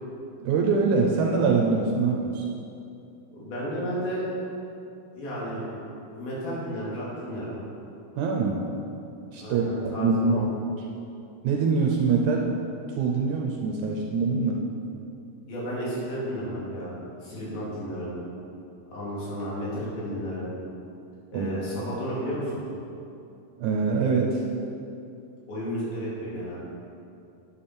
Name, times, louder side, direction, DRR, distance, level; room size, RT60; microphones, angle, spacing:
voice 1, 0.4-2.4 8.2-8.6 9.3-10.5 11.4-12.5 13.0-14.6 21.3-21.5 23.6-24.4, right 4 dB, 75° right, 0 dB, 1.9 m, -24 dB
voice 2, 3.3-4.3 5.2-5.6 6.1-7.6 9.4-10.5 15.5-16.9 17.2-18.1 18.9-20.5 21.3-22.6 25.5-26.6, equal, 90° left, -7 dB, 4.3 m, -32 dB
9.6 x 8.5 x 4.3 m, 2.7 s
omnidirectional pair, 4.1 m